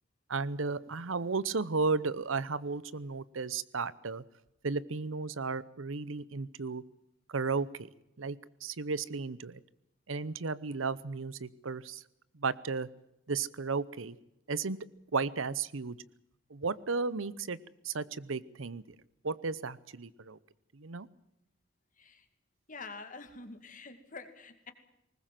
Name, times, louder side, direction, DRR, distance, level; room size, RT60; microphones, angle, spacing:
voice 1, 0.3-4.2 4.6-6.8 7.3-7.9 8.2-9.6 10.1-12.0 12.4-12.9 13.3-14.2 14.5-14.8 15.1-16.0 16.5-17.6 17.8-18.8 19.2-20.4 20.7-21.1, right 4 dB, 85° right, 19 dB, 0.8 m, -34 dB
voice 2, 22.7-24.7, left 3 dB, 40° left, 8 dB, 2.4 m, -46 dB
20.0 x 20.0 x 7.6 m, 0.87 s
head